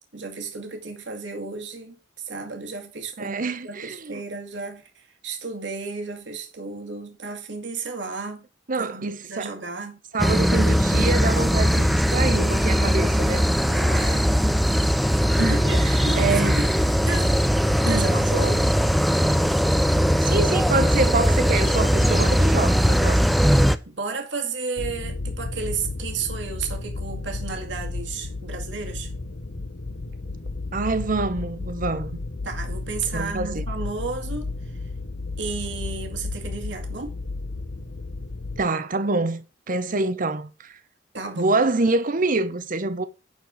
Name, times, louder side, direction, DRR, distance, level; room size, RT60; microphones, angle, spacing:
voice 1, 0.1-8.5 8.8-10.0 13.7-14.3 15.5-16.7 17.1-17.4 17.9-18.7 23.9-29.1 32.4-34.5 35.4-37.1 41.1-41.6, right 4 dB, 70° right, 2.1 m, -33 dB
voice 2, 3.2-4.2 8.7-9.5 10.1-13.4 15.4-16.5 17.9-18.2 20.2-23.2 30.7-32.2 33.1-33.6 38.6-40.5 41.4-43.1, right 3 dB, 45° right, 0.9 m, -26 dB
sound 1, 10.2-23.8, equal, ahead, 0.5 m, -20 dB
sound 2, 24.8-38.6, left 3 dB, 65° left, 0.9 m, -33 dB
10.5 x 4.5 x 6.3 m
head